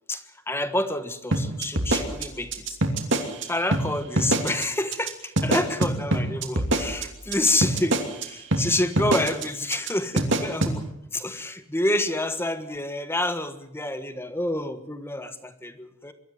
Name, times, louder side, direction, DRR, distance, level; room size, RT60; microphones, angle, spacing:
voice 1, 0.1-2.8 3.4-16.1, left 1 dB, 10° left, 10 dB, 1.3 m, -28 dB
sound 1, 1.3-3.4 3.7-3.8 4.2-4.6 4.9-5.1 5.4-8.2 8.5-8.6 9.0-9.4 9.7-9.9 10.2-10.7, right 2 dB, 60° right, 2.9 m, -24 dB
23.0 x 13.5 x 9.2 m, 0.80 s
head